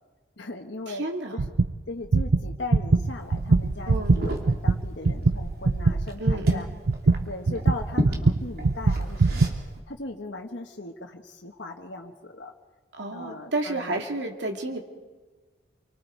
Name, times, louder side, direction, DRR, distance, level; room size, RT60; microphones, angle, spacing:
voice 1, 0.4-1.1 1.3-1.4 1.9-6.7 7.3-9.5 9.9-12.5 13.1-14.0, left 2 dB, 75° left, 1 dB, 1.5 m, -38 dB
voice 2, 0.9-1.4 3.9-4.2 6.2-6.6 12.9-14.8, right 2 dB, 70° right, 2 dB, 2.6 m, -31 dB
sound 1, 1.4-1.7 2.0-9.6, right 3 dB, 90° right, 0.6 m, -22 dB
Liquid, 3.0-9.8, equal, 55° right, 3.0 m, -36 dB
28.0 x 25.0 x 4.7 m, 1.4 s
head